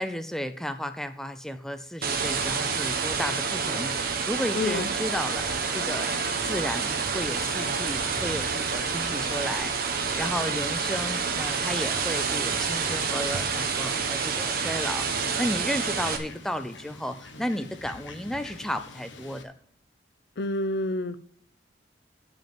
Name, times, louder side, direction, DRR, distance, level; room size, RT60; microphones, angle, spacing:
voice 1, 0.0-6.1 6.4-19.5, equal, 5° left, 10 dB, 0.4 m, -33 dB
sound 1, 2.0-16.2, right 5 dB, 55° right, 1.1 m, -28 dB
voice 2, 4.5-4.9 20.4-21.2, left 1 dB, 60° left, 14 dB, 0.5 m, -28 dB
Fowl, 5.8-19.4, left 3 dB, 90° left, 1.1 m, -46 dB
8.9 x 5.1 x 7.2 m, 0.67 s
head